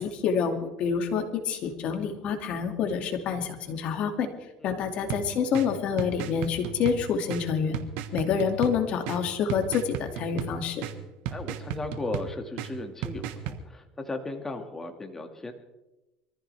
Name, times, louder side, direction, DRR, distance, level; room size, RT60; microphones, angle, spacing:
voice 1, 0.0-4.3 4.6-7.8 8.1-10.8, left 6 dB, 55° left, 5 dB, 2.3 m, -27 dB
sound 1, 5.1-13.6, right 9 dB, 75° right, 1.4 m, -36 dB
voice 2, 11.3-15.5, left 2 dB, 15° left, 5 dB, 2.1 m, -36 dB
24.0 x 15.0 x 3.5 m, 1.0 s
cardioid pair, 115°, 2 cm